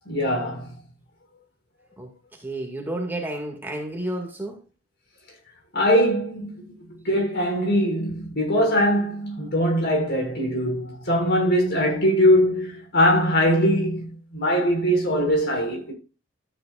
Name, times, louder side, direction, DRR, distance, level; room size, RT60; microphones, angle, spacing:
voice 1, 0.1-0.7 5.7-6.7 7.0-15.9, equal, 55° left, 6.2 m, -21 dB
voice 2, 2.0-4.6, right 1 dB, 10° right, 2.1 m, -31 dB
13.0 x 9.4 x 2.5 m
head